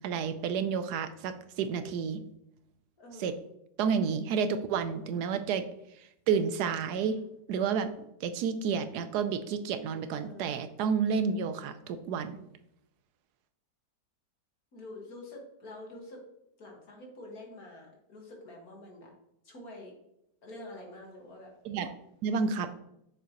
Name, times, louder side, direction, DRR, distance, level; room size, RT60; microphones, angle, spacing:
voice 1, 0.0-2.2 3.2-3.3 3.8-5.6 6.3-7.2 7.5-7.9 8.2-12.4 21.6-21.9 22.2-22.7, right 6 dB, 75° right, 10 dB, 1.1 m, -30 dB
voice 2, 3.0-3.4 10.1-10.6 14.7-16.2 16.6-19.1 19.4-19.9 20.4-21.5, left 2 dB, 60° left, 0 dB, 2.1 m, -47 dB
6.9 x 6.5 x 2.9 m, 0.80 s
omnidirectional pair, 1.8 m